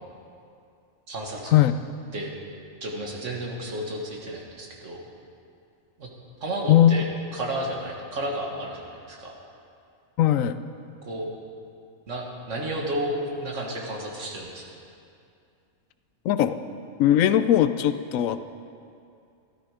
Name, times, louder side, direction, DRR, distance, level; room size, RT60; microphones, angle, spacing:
voice 1, 1.1-1.6 2.1-2.3 2.8-5.0 6.0-6.1 6.4-7.1 7.3-9.3 11.0-11.3 12.1-14.6, right 1 dB, 65° right, -1 dB, 2.0 m, -32 dB
voice 2, 6.7-7.0 10.2-10.6 16.2-16.6 17.0-18.4, left 11 dB, 80° left, 12 dB, 1.0 m, -19 dB
13.0 x 12.5 x 4.9 m, 2.5 s
omnidirectional pair, 1.4 m